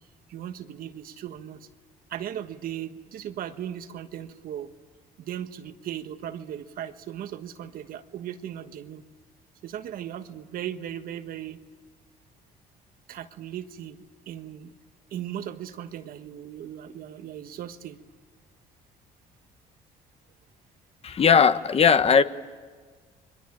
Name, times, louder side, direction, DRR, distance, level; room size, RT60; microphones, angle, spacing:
voice 1, 0.3-1.6 2.1-4.7 5.2-9.0 9.6-11.6 13.1-14.0 14.3-14.7 15.1-18.0, right 10 dB, 65° right, 9 dB, 1.4 m, -37 dB
voice 2, 21.0-22.2, left 6 dB, 40° left, 11 dB, 1.2 m, -18 dB
30.0 x 22.5 x 8.8 m, 1.5 s
cardioid pair, 95°, 16 cm